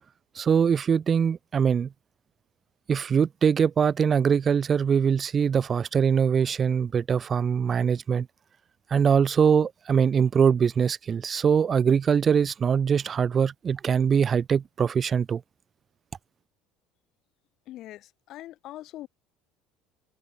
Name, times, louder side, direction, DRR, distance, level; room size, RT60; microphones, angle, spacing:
voice 1, 0.4-1.9 2.9-8.3 8.9-15.4, right 7 dB, 35° right, 0.3 m, -22 dB
voice 2, 17.7-19.1, left 14 dB, 60° left, 2.1 m, -42 dB
hypercardioid pair, 80°, 0 cm